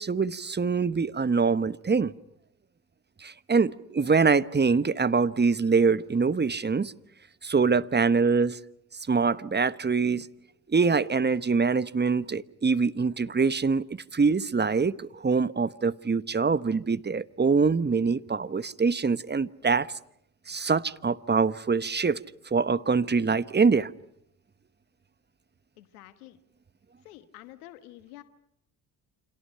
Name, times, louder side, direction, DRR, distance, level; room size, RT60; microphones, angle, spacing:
voice 1, 0.0-2.1 3.2-6.9 7.4-8.6 9.1-10.3 10.7-13.8 14.1-19.9 20.5-22.2 22.5-23.9, right 4 dB, 25° right, 1.1 m, -24 dB
voice 2, 25.8-26.4 27.0-28.2, left 15 dB, 90° left, 1.3 m, -48 dB
29.5 x 27.0 x 5.7 m
hypercardioid pair, 50°, 44 cm